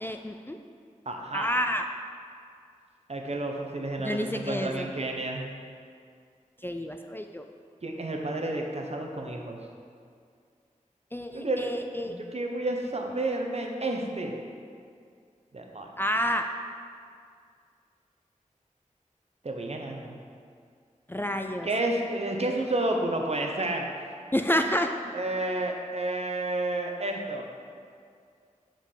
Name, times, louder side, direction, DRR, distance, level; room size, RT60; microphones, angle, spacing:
voice 1, 0.0-0.6 1.3-1.8 4.0-4.9 6.6-7.5 11.1-12.1 16.0-16.5 21.1-21.7 24.3-25.1, equal, 15° left, 5 dB, 0.4 m, -29 dB
voice 2, 1.1-1.6 3.1-5.5 7.8-9.6 11.3-11.8 12.1-14.3 15.5-15.9 19.4-20.2 21.6-23.9 25.1-27.5, right 2 dB, 50° right, 2 dB, 0.9 m, -30 dB
5.2 x 5.1 x 5.6 m, 2.2 s
cardioid pair, 40°, 14 cm